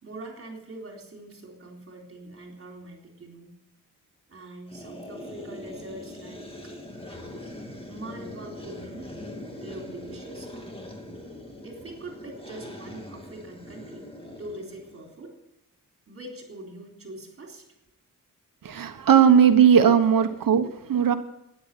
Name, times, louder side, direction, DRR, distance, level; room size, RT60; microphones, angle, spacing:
voice 1, 0.0-3.6 4.3-6.7 7.9-9.1 9.6-10.7 11.6-14.1 14.4-15.4 16.1-17.6, right 1 dB, 40° right, 1 dB, 3.8 m, -43 dB
sound 1, 4.7-15.1, left 1 dB, 15° left, 2.1 m, -41 dB
voice 2, 18.6-21.2, right 8 dB, 80° right, 9 dB, 1.1 m, -18 dB
12.5 x 10.0 x 9.0 m, 0.86 s
wide cardioid pair, 140°, 33 cm